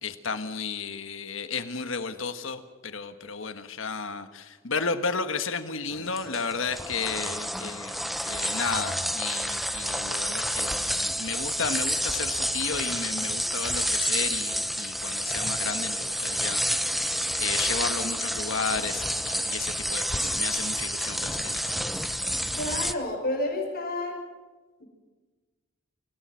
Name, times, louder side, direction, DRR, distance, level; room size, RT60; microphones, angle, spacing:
voice 1, 0.0-21.8, left 5 dB, 70° left, 9 dB, 1.5 m, -33 dB
sound 1, 5.9-22.9, equal, ahead, 0.8 m, -29 dB
voice 2, 22.6-24.2 24.8-24.9, left 2 dB, 50° left, 1 dB, 6.2 m, -30 dB
28.0 x 17.5 x 6.3 m, 1.3 s
head